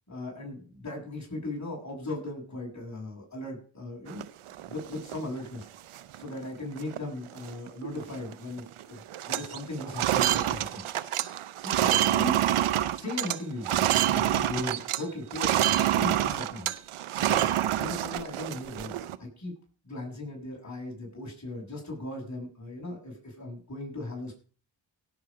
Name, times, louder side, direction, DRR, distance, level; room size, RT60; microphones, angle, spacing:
voice 1, 0.1-4.2 4.7-5.7 6.2-9.0 9.3-10.8 11.6-12.4 12.9-16.7 17.2-19.5 19.8-24.3, left 2 dB, 35° left, 0 dB, 7.2 m, -38 dB
sound 1, 4.1-5.2 5.6-5.7 6.0-6.3 6.8-7.0 7.3-8.3 8.6-8.8 9.1-15.0 15.3-19.2, right 12 dB, 80° right, 0.8 m, -27 dB
17.5 x 7.4 x 5.1 m, 0.40 s
supercardioid pair, 45°, 49 cm